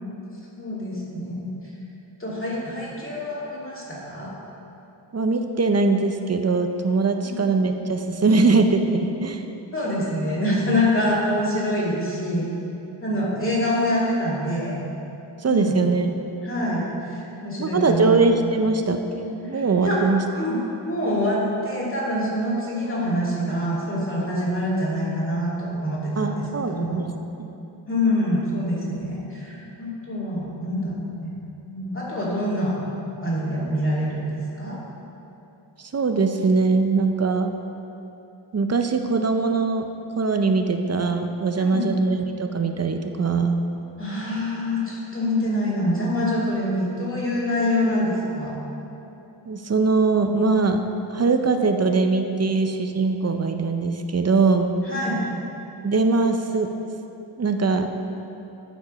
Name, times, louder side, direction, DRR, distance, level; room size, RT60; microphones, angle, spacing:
voice 1, 0.6-1.5 2.2-4.3 7.3-7.4 9.7-12.5 13.0-14.7 15.4-15.7 16.4-18.2 19.5-20.0 20.3-27.0 27.9-31.4 31.7-32.8 33.2-34.8 41.6-42.0 44.0-48.5 54.9-55.2, left 1 dB, 25° left, -7 dB, 2.3 m, -25 dB
voice 2, 5.1-9.4 15.4-16.1 17.6-20.2 26.2-27.1 27.4-27.5 35.8-37.5 38.5-39.9 40.2-43.6 49.5-50.8 51.1-54.7 55.8-56.7 57.4-57.9, right 4 dB, 35° right, 6 dB, 0.6 m, -21 dB
12.0 x 5.2 x 5.1 m, 2.9 s
wide cardioid pair, 115°, 48 cm